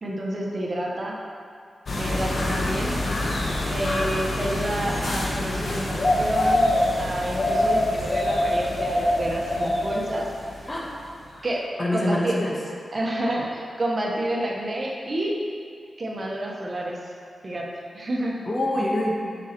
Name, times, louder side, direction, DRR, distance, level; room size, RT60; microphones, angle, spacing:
voice 1, 0.0-1.2 2.0-3.0 3.7-6.7 7.0-10.3 11.4-11.6 11.9-12.3 12.9-15.3 16.0-17.0 17.4-17.7 17.9-18.4, right 1 dB, 45° right, -2 dB, 1.3 m, -29 dB
sound 1, 1.9-11.1 11.4-11.5, left 1 dB, 65° left, 1.4 m, -25 dB
voice 2, 11.8-12.5 18.5-19.4, left 1 dB, 35° left, -3 dB, 1.6 m, -25 dB
5.9 x 5.4 x 6.1 m, 2.2 s
cardioid pair, 50°, 0 cm